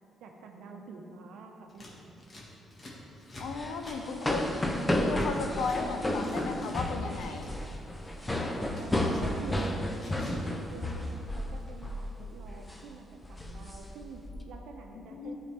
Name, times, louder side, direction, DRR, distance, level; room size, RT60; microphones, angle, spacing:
voice 1, 0.2-2.2 8.5-9.8 10.1-15.4, right 4 dB, 80° right, 3 dB, 0.8 m, -47 dB
Scissors, 1.7-5.8 6.0-7.6 7.9-10.5 10.8-11.7, equal, 35° left, 1.5 m, -47 dB
voice 2, 3.4-4.6 4.9-7.5 14.9-15.4, left 4 dB, 80° left, 5 dB, 0.6 m, -35 dB
sound 1, 3.5-11.5 11.8-12.1 12.5-12.8 13.2-14.4, left 1 dB, 15° left, 0.7 m, -32 dB
11.5 x 4.1 x 3.4 m, 2.8 s
cardioid pair, 90°, 0 cm